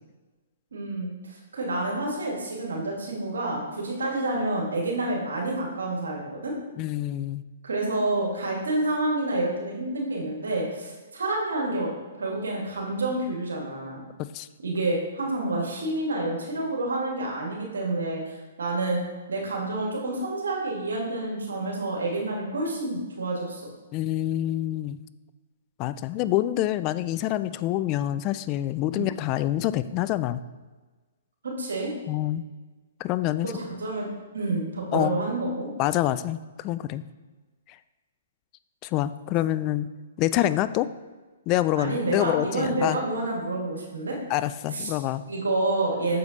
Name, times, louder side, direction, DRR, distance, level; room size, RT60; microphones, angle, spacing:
voice 1, 0.7-6.5 7.6-11.9 12.2-14.0 14.6-19.0 19.3-23.7 28.9-29.1 31.4-31.9 33.4-34.1 34.3-35.7 41.7-44.2 44.7-44.9 45.3-46.2, right 2 dB, 80° right, -1 dB, 1.9 m, -28 dB
voice 2, 6.8-7.4 14.2-14.5 23.9-25.0 25.8-30.4 32.1-32.4 33.0-33.5 34.9-35.2 35.8-37.1 38.8-39.9 40.2-40.9 41.5-43.0 44.3-45.2, left 14 dB, 35° left, 14 dB, 0.3 m, -26 dB
6.8 x 5.0 x 4.1 m, 1.3 s
hypercardioid pair, 130°, 0 cm